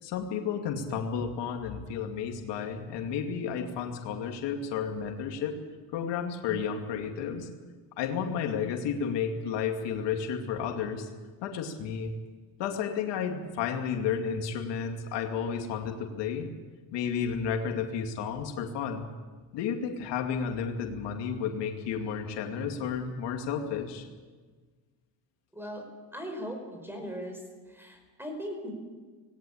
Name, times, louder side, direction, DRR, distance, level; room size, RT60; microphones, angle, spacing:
voice 1, 0.0-5.6 5.9-7.5 8.0-11.1 11.4-12.1 12.6-16.5 16.9-19.1 19.5-24.1, left 7 dB, 80° left, 4 dB, 2.5 m, -32 dB
voice 2, 25.5-25.9 26.1-27.4 27.7-28.7, equal, 5° right, 4 dB, 5.2 m, -38 dB
19.0 x 17.5 x 8.6 m, 1.4 s
cardioid pair, 125°, 41 cm